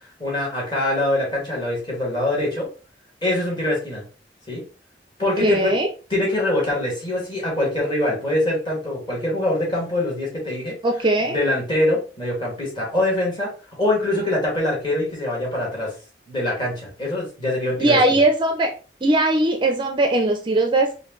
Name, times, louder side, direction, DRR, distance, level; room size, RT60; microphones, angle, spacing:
voice 1, 0.2-2.7 3.2-4.0 4.5-4.6 5.2-5.8 6.1-10.8 11.3-13.5 13.8-15.9 16.3-18.2, left 1 dB, 25° left, -4 dB, 2.1 m, -24 dB
voice 2, 5.4-5.9 10.8-11.3 17.8-18.7 19.0-21.0, right 2 dB, 30° right, 4 dB, 0.5 m, -19 dB
5.0 x 2.6 x 3.1 m, 0.35 s
head